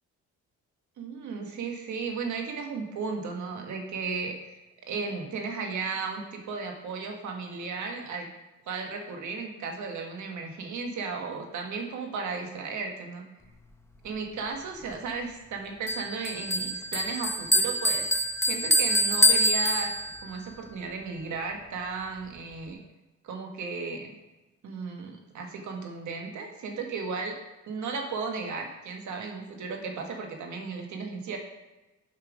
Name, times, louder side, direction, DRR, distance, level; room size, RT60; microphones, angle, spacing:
voice 1, 1.0-4.6 4.9-8.3 8.6-13.2 14.0-19.9 20.2-22.8 23.2-24.1 24.6-27.3 27.7-31.4, right 4 dB, 70° right, 2 dB, 1.6 m, -35 dB
Bell, 15.9-20.4, equal, 10° left, 0.8 m, -25 dB
7.5 x 5.7 x 5.1 m, 1.1 s
cardioid pair, 90°, 30 cm